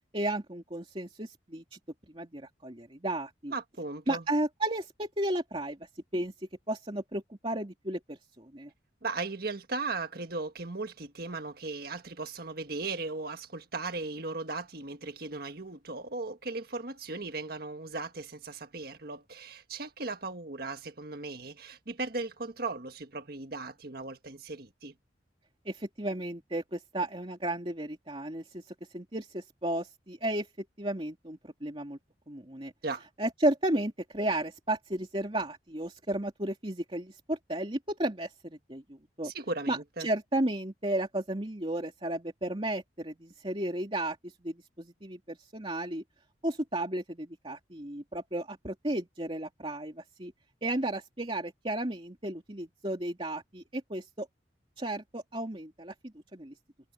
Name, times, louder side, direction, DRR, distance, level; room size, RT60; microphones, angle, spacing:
voice 1, 0.1-1.8 2.1-3.5 4.1-5.8 6.1-6.3 6.7-8.7 25.6-28.6 28.9-30.5 30.8-32.0 32.3-32.7 33.2-39.3 39.7-46.0 46.4-50.3 50.6-54.3 54.8-56.5, right 1 dB, 30° right, 2.8 m, -33 dB
voice 2, 3.5-4.2 9.0-24.9 32.8-33.1 39.2-40.1, right 3 dB, 55° right, 1.6 m, -37 dB
head